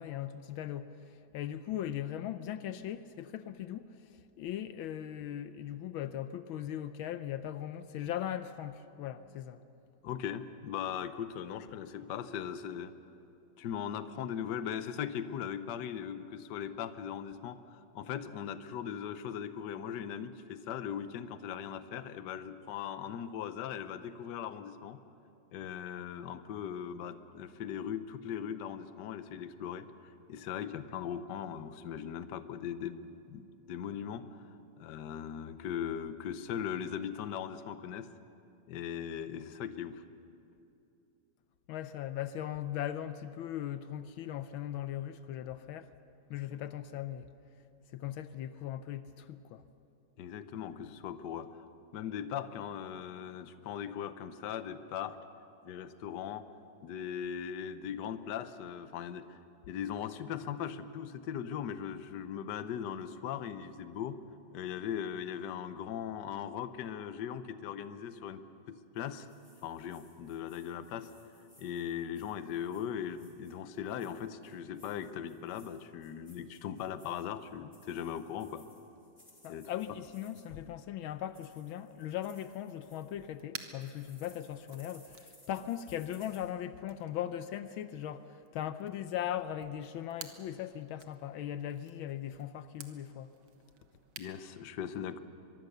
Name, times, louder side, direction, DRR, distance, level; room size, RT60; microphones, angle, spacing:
voice 1, 0.0-3.9 4.4-9.6 41.7-45.9 46.3-47.3 47.9-49.6 79.4-93.3, left 11 dB, 80° left, 12 dB, 1.5 m, -39 dB
voice 2, 10.0-12.9 13.6-25.0 25.5-34.4 34.8-38.1 38.7-40.0 50.2-51.6 51.9-55.2 55.6-56.5 56.8-59.4 59.7-64.2 64.5-69.3 69.6-71.1 71.6-78.6 79.5-79.7 94.2-95.2, left 8 dB, 65° left, 11 dB, 1.4 m, -39 dB
sound 1, 69.0-80.7 81.1-83.4 83.8-86.4, left 1 dB, 20° left, 4.8 m, -63 dB
sound 2, 82.4-94.4, right 7 dB, 75° right, 2.0 m, -54 dB
23.5 x 23.0 x 6.7 m, 2.7 s
omnidirectional pair, 2.2 m